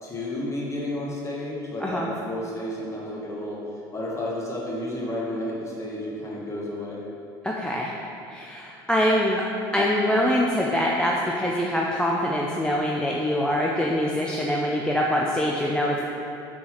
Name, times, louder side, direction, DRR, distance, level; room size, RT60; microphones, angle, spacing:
voice 1, 0.0-3.6 3.9-7.0, left 1 dB, 25° left, -4 dB, 1.0 m, -31 dB
voice 2, 7.4-7.9 8.3-9.4 9.7-16.0, equal, 5° left, -3 dB, 0.3 m, -24 dB
4.0 x 3.7 x 2.9 m, 2.8 s
hypercardioid pair, 85°, 11 cm